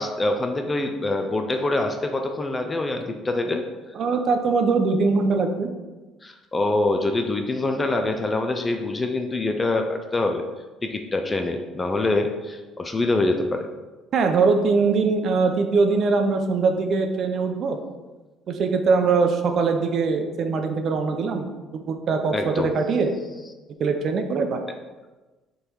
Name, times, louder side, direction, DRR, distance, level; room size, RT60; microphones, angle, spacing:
voice 1, 0.0-3.6 6.2-10.5 10.8-13.7 22.3-22.8, left 2 dB, 15° left, 5 dB, 0.4 m, -25 dB
voice 2, 3.9-5.7 14.1-17.8 18.5-21.5 21.7-23.1 23.8-24.6, right 4 dB, 40° right, 6 dB, 0.6 m, -22 dB
6.6 x 3.9 x 4.6 m, 1.2 s
cardioid pair, 175°, 0 cm